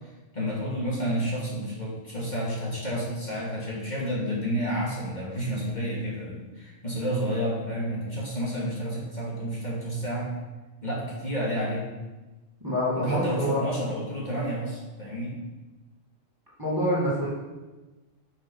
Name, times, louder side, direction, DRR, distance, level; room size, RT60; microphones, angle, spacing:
voice 1, 0.3-10.3 10.8-11.9 12.9-15.4, equal, 35° left, -6 dB, 2.5 m, -30 dB
voice 2, 12.6-13.7 16.6-17.3, equal, 15° right, -7 dB, 2.3 m, -26 dB
8.6 x 6.2 x 5.6 m, 1.2 s
omnidirectional pair, 1.3 m